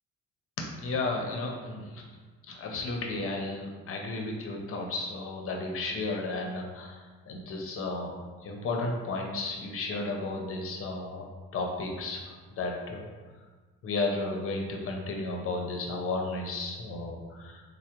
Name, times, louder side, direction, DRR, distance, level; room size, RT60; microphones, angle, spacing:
voice 1, 0.6-2.0 2.5-7.0 7.3-8.1 8.4-11.2 11.5-13.0 13.8-17.6, left 3 dB, 45° left, 1 dB, 0.6 m, -33 dB
3.2 x 2.0 x 2.9 m, 1.4 s
cardioid pair, 90°, 30 cm